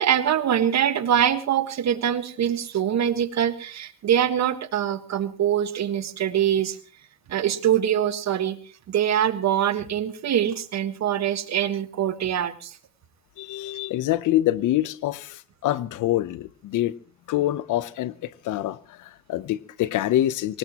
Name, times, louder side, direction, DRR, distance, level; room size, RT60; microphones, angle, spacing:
voice 1, 0.0-6.8 7.3-8.6 8.9-12.8, right 10 dB, 65° right, 1.6 m, -24 dB
voice 2, 13.4-16.9 17.3-20.6, left 14 dB, 80° left, 0.8 m, -26 dB
24.0 x 19.0 x 3.0 m
cardioid pair, 90°, 30 cm